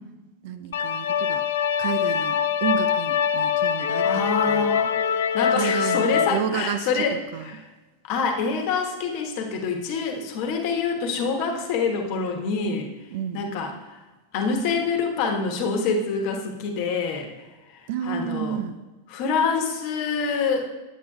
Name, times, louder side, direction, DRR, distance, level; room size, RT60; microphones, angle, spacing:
voice 1, 0.4-1.4 1.8-4.7 5.5-7.6 13.1-13.5 17.9-18.8, right 8 dB, 50° right, 9 dB, 0.5 m, -31 dB
sound 1, 0.7-6.4, left 8 dB, 60° left, 0.3 m, -23 dB
voice 2, 4.0-7.6 8.0-12.9 13.3-14.0 14.3-17.3 17.7-18.6 19.1-20.7, left 5 dB, 45° left, 3 dB, 1.2 m, -26 dB
9.0 x 8.4 x 2.3 m, 1.2 s
figure-of-eight pair, 90°, 0 cm